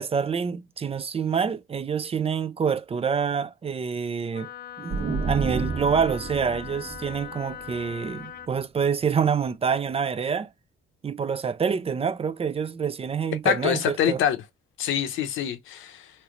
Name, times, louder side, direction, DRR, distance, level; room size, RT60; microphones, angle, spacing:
voice 1, 0.0-4.5 4.8-10.5 11.0-14.2, right 6 dB, 30° right, 0.4 m, -27 dB
Wind instrument woodwind instrument, 4.3-8.5, left 10 dB, 50° left, 0.4 m, -40 dB
sound 1, 4.9-8.5, right 4 dB, 60° right, 1.2 m, -32 dB
voice 2, 13.4-14.4 14.8-16.1, left 9 dB, 80° left, 0.7 m, -25 dB
3.2 x 2.9 x 2.4 m
cardioid pair, 90°, 20 cm